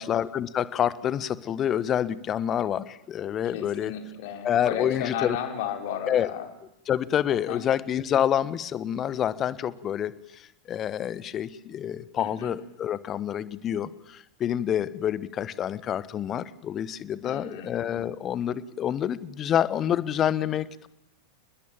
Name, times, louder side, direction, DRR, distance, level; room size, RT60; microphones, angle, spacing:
voice 1, 0.0-3.9 4.4-5.4 6.1-6.3 6.9-10.1 10.7-20.9, left 10 dB, 30° left, 18 dB, 1.3 m, -27 dB
voice 2, 3.4-6.5 7.3-7.6 12.2-12.5 17.2-17.8, left 9 dB, 50° left, 6 dB, 4.7 m, -34 dB
29.0 x 21.0 x 7.5 m, 0.80 s
figure-of-eight pair, 90°, 0 cm